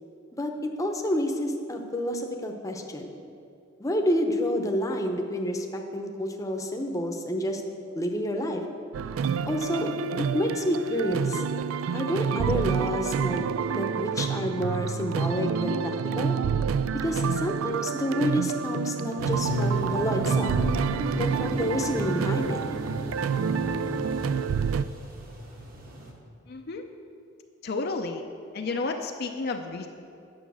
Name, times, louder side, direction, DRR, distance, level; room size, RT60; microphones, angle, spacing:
voice 1, 0.8-3.1 3.8-7.6 7.9-8.6 9.5-9.9 10.3-11.4 11.9-13.4 13.7-16.4 17.0-20.6 21.2-22.6, equal, 15° left, 3 dB, 0.8 m, -29 dB
sound 1, 8.9-24.9, right 6 dB, 85° right, 0.3 m, -28 dB
sound 2, 19.2-26.1, right 1 dB, 45° right, 1.4 m, -33 dB
voice 2, 26.5-26.9 27.6-28.2 28.5-29.9, left 3 dB, 50° left, 4 dB, 0.5 m, -31 dB
9.3 x 7.2 x 6.2 m, 2.5 s
head